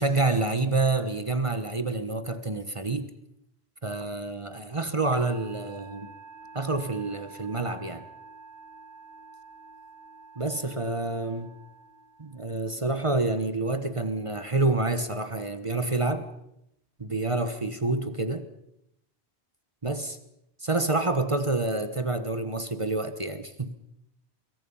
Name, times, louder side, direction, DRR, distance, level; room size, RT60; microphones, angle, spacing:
voice 1, 0.0-3.1 3.8-6.1 6.5-8.0 10.4-11.5 12.2-16.3 17.0-18.5 19.8-20.2 20.6-23.7, right 2 dB, 30° right, 1.2 m, -28 dB
Musical instrument, 5.1-12.8, right 4 dB, 80° right, 2.1 m, -49 dB
24.5 x 23.0 x 5.6 m
omnidirectional pair, 1.1 m